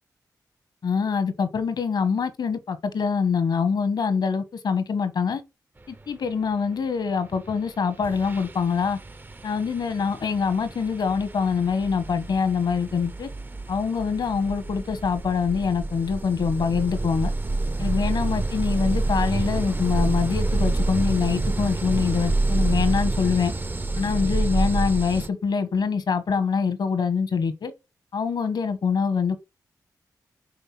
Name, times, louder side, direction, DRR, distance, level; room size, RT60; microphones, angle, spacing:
voice 1, 0.8-5.4 5.9-9.0 9.4-13.3 13.7-17.3 17.8-23.5 24.0-27.7 28.1-29.4, left 5 dB, 75° left, 1.2 m, -24 dB
sound 1, 7.5-7.7 8.0-25.3, right 2 dB, 25° right, 0.6 m, -28 dB
5.5 x 3.9 x 5.9 m
cardioid pair, 50°, 7 cm